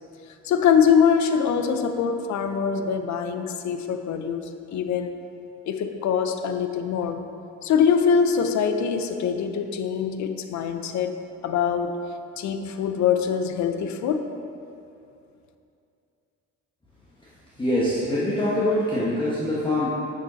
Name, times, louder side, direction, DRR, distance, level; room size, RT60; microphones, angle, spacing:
voice 1, 0.4-5.1 5.7-7.2 7.6-11.1 11.4-12.0 12.4-14.3, left 7 dB, 65° left, 7 dB, 0.6 m, -23 dB
voice 2, 17.6-19.9, left 1 dB, 15° left, -9 dB, 1.4 m, -24 dB
6.5 x 6.2 x 4.0 m, 2.6 s
cardioid pair, 90°, 30 cm